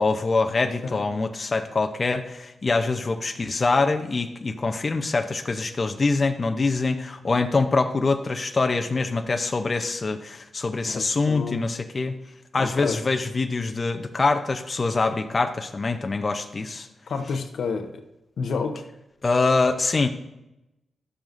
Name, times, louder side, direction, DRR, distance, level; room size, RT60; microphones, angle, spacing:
voice 1, 0.0-12.1 12.5-16.9 19.2-20.1, left 3 dB, 45° left, 6 dB, 0.7 m, -24 dB
voice 2, 10.9-11.7 12.6-13.0 17.1-18.0 18.4-18.9, left 5 dB, 75° left, 6 dB, 0.8 m, -29 dB
12.5 x 7.2 x 2.6 m, 0.92 s
cardioid pair, 55°, 0 cm